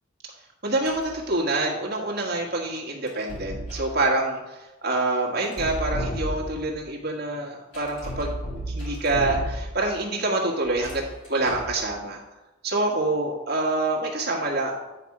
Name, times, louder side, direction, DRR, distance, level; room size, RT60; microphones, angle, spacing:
voice 1, 0.6-8.3 8.7-12.2 12.6-14.7, right 2 dB, 50° right, -2 dB, 1.5 m, -26 dB
sound 1, 0.8-1.2 3.1-4.0 5.4-6.7 7.7-9.9 10.6-11.8, right 1 dB, 60° left, 3.0 m, -33 dB
9.2 x 4.2 x 4.8 m, 1.1 s
head